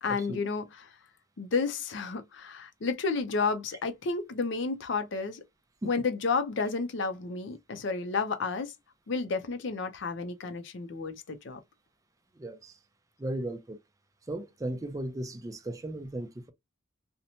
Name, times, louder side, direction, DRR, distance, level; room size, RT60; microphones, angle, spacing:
voice 1, 0.0-0.9 1.4-5.4 5.8-8.7 9.1-11.6, left 4 dB, 60° left, 0.5 m, -31 dB
voice 2, 12.4-12.7 13.2-13.8 14.3-16.5, right 1 dB, 15° right, 0.4 m, -36 dB
2.8 x 2.1 x 2.7 m
head